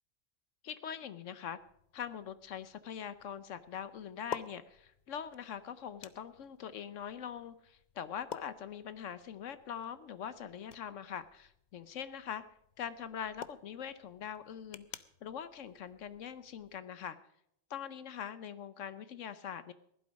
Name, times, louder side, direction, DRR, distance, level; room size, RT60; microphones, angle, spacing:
voice 1, 0.6-1.6 1.9-12.4 12.8-17.2 17.7-19.7, left 8 dB, 75° left, 14 dB, 1.1 m, -43 dB
sound 1, 1.6-16.8, left 7 dB, 45° left, 0.6 m, -52 dB
16.5 x 11.5 x 5.2 m, 0.75 s
omnidirectional pair, 1.3 m